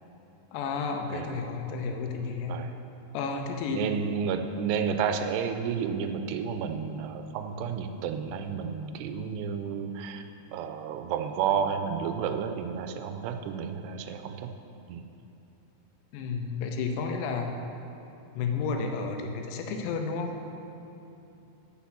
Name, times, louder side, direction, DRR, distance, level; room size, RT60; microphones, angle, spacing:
voice 1, 0.5-2.6 3.1-3.9 16.1-17.5 18.4-20.3, left 4 dB, 85° left, 4 dB, 2.9 m, -31 dB
voice 2, 3.7-10.2 10.5-14.5 14.9-15.0, right 7 dB, 85° right, 7 dB, 2.6 m, -31 dB
8.5 x 5.7 x 7.2 m, 2.9 s
omnidirectional pair, 4.8 m